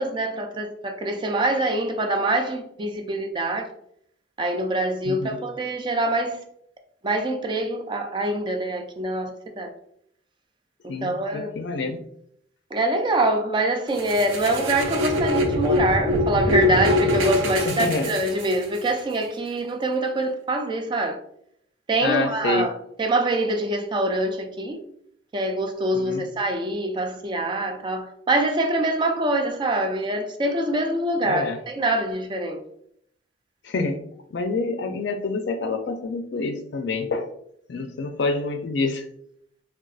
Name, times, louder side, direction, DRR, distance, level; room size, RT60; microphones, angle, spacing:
voice 1, 0.0-3.7 4.4-6.4 7.0-9.7 11.0-11.5 12.7-21.2 21.9-22.7 23.0-24.8 25.3-32.6, right 1 dB, 25° right, 0.3 m, -24 dB
voice 2, 5.0-5.4 10.9-12.0 17.7-18.1 22.0-22.7 25.9-26.2 31.2-31.6 33.6-34.0 34.3-37.3 37.7-39.1, left 3 dB, 60° left, 0.4 m, -27 dB
sound 1, 14.0-18.9, left 1 dB, 85° right, 0.6 m, -24 dB
3.9 x 2.3 x 2.3 m
head